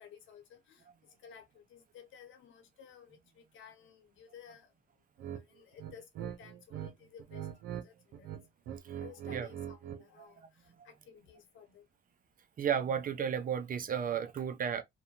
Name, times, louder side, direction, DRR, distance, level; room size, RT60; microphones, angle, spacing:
voice 1, 0.0-4.7 5.3-8.4 9.0-11.8, left 8 dB, 75° left, 0.9 m, -55 dB
sound 1, 5.2-5.4 5.8-6.9 7.2-7.8 8.1-10.0, right 10 dB, 85° right, 0.6 m, -42 dB
voice 2, 12.6-14.8, right 8 dB, 45° right, 0.5 m, -33 dB
2.6 x 2.2 x 2.8 m
cardioid pair, 90°, 20 cm